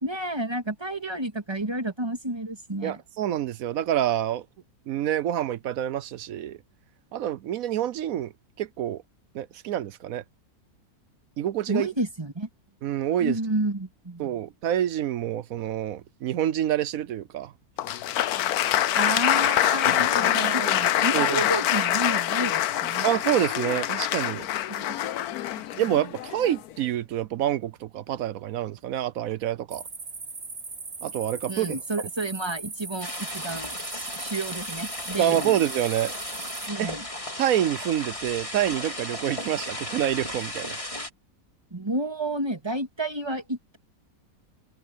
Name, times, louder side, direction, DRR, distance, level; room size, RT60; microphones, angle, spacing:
voice 1, 0.0-3.0 11.7-12.5 13.2-14.4 19.0-23.1 24.7-25.1 25.7-25.8 31.5-35.6 36.7-37.0 41.7-43.8, right 2 dB, 15° right, 2.2 m, -31 dB
voice 2, 2.8-4.4 4.9-6.6 7.1-8.3 8.6-9.0 9.3-10.2 11.4-11.9 12.8-13.4 14.2-17.5 21.1-21.4 23.0-24.4 25.8-29.8 31.0-31.8 35.2-36.1 36.8-36.9 37.4-40.8, right 11 dB, 70° right, 1.1 m, -27 dB
Applause, 17.8-26.7, left 12 dB, 80° left, 1.2 m, -25 dB
sound 1, 29.7-36.7, right 4 dB, 40° right, 2.1 m, -39 dB
sound 2, 33.0-41.1, left 1 dB, 20° left, 3.2 m, -35 dB
omnidirectional pair, 1.6 m